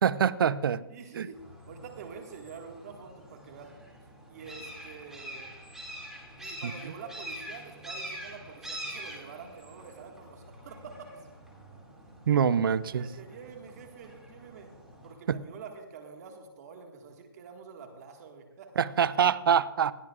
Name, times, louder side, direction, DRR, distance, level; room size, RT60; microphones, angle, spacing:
voice 1, 0.0-0.8 1.2-1.3 12.3-13.1 15.3-15.4 18.8-19.9, right 8 dB, 60° right, 18 dB, 0.6 m, -24 dB
voice 2, 0.9-3.8 4.3-5.5 6.4-11.3 12.8-14.7 15.0-18.8, right 5 dB, 40° right, 3 dB, 1.8 m, -47 dB
sound 1, 1.3-15.1, equal, 5° right, 2.3 m, -45 dB
19.5 x 13.5 x 2.4 m, 1.0 s
hypercardioid pair, 150°, 13 cm